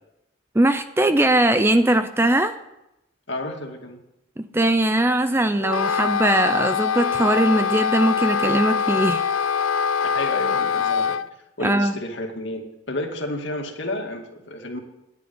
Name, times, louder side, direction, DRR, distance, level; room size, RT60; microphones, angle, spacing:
voice 1, 0.5-2.6 4.4-9.3 11.6-11.9, right 1 dB, 10° right, 10 dB, 0.4 m, -20 dB
voice 2, 3.3-4.0 10.0-11.2 11.6-14.8, left 1 dB, 60° left, 2 dB, 2.3 m, -31 dB
Wind instrument woodwind instrument, 5.6-11.3, left 6 dB, 80° left, 0.5 m, -23 dB
10.5 x 9.8 x 9.5 m, 0.90 s
head